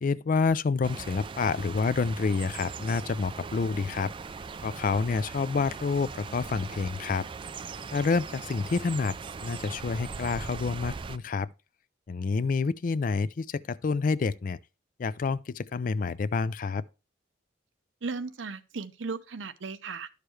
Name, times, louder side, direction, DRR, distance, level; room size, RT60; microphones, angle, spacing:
voice 1, 0.0-4.1 4.6-7.3 7.9-9.1 9.4-11.5 12.1-14.6 15.0-16.8, left 4 dB, 45° left, 0.4 m, -28 dB
sound 1, 0.8-11.2, right 5 dB, 25° right, 0.3 m, -40 dB
voice 2, 18.0-20.1, right 4 dB, 90° right, 0.7 m, -36 dB
11.5 x 6.6 x 3.1 m
head